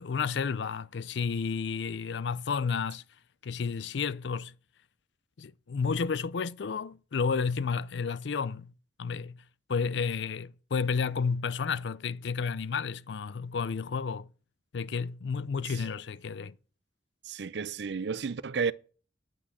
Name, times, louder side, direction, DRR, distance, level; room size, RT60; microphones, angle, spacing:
voice 1, 0.0-3.0 3.4-4.5 5.4-8.7 9.0-9.4 9.7-14.3 14.7-16.6, left 5 dB, 70° left, 0.5 m, -31 dB
voice 2, 17.3-18.7, right 5 dB, 65° right, 0.5 m, -32 dB
9.9 x 6.0 x 8.4 m
head